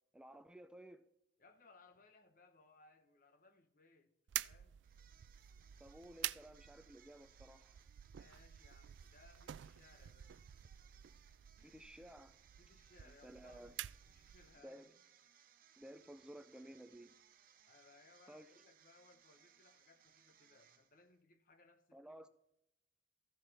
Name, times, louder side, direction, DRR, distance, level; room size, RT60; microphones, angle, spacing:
voice 1, 0.1-1.0 5.8-7.8 11.6-12.4 13.0-13.8 14.6-15.0 15.8-17.1 18.3-18.5 21.9-22.3, right 1 dB, 5° right, 0.5 m, -55 dB
voice 2, 1.4-4.1 4.4-4.9 8.1-10.4 11.6-11.8 12.6-14.9 17.7-22.3, left 3 dB, 50° left, 1.1 m, -66 dB
sound 1, 4.3-14.6, right 13 dB, 80° right, 0.3 m, -49 dB
sound 2, 4.8-21.2, right 9 dB, 55° right, 0.8 m, -68 dB
14.5 x 11.0 x 3.4 m
head